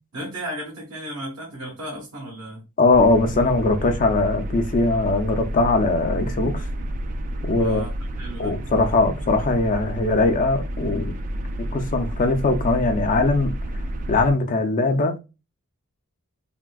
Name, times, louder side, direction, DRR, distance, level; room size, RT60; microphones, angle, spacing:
voice 1, 0.1-2.6 7.6-8.5, right 1 dB, 65° right, 0.9 m, -34 dB
voice 2, 2.8-6.7 7.4-7.8 8.4-11.2 11.7-13.5 14.1-15.2, left 3 dB, 35° left, 0.4 m, -20 dB
sound 1, 2.9-14.3, right 1 dB, 35° right, 0.3 m, -30 dB
3.6 x 2.5 x 2.3 m
head